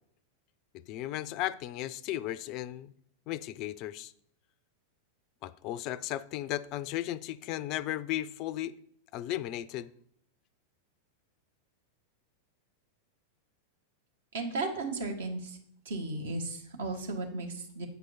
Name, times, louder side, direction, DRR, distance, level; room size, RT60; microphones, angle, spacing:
voice 1, 0.9-2.9 3.3-4.1 5.4-8.8 9.1-9.9, left 14 dB, 40° left, 0.3 m, -35 dB
voice 2, 14.3-15.6 15.8-17.9, right 2 dB, 60° right, 1.2 m, -35 dB
8.1 x 4.8 x 4.1 m
figure-of-eight pair, 90°, 0 cm